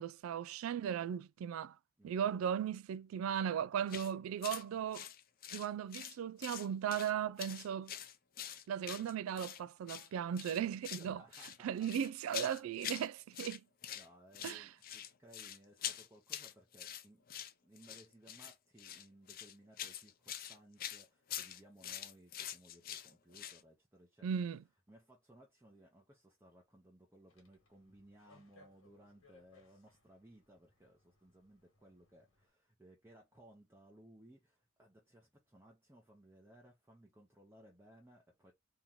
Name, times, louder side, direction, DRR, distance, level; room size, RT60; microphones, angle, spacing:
voice 1, 0.0-1.8 2.0-5.1 5.5-8.0 8.7-11.2 11.6-13.6 14.4-14.7 24.2-24.6, right 8 dB, 85° right, 0.3 m, -37 dB
voice 2, 2.0-2.4 10.9-11.9 13.9-17.2 17.6-24.4 24.9-38.5, right 1 dB, 10° right, 0.7 m, -62 dB
sound 1, 3.9-4.1 4.4-4.6 4.9-6.2 6.4-7.1 7.4-9.6 9.9-10.1 10.4-11.1 11.3-13.1 13.3-14.1 14.3-23.6, left 10 dB, 45° left, 0.4 m, -45 dB
sound 2, 27.3-32.5, left 3 dB, 75° left, 1.3 m, -68 dB
3.0 x 2.8 x 3.6 m
head